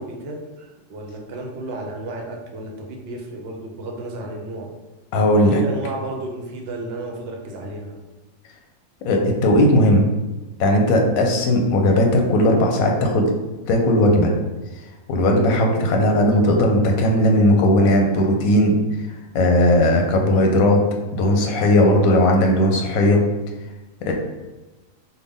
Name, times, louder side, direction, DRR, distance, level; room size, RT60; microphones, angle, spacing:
voice 1, 0.0-4.7 5.4-8.0 11.0-11.2, right 2 dB, 60° right, 2 dB, 0.7 m, -32 dB
voice 2, 5.1-5.6 9.0-10.0 10.6-13.3 13.7-14.3 15.1-18.8 19.3-20.8 21.1-23.2 24.0-24.1, left 1 dB, 85° left, 2 dB, 1.1 m, -17 dB
3.5 x 2.2 x 3.5 m, 1.1 s
omnidirectional pair, 1.4 m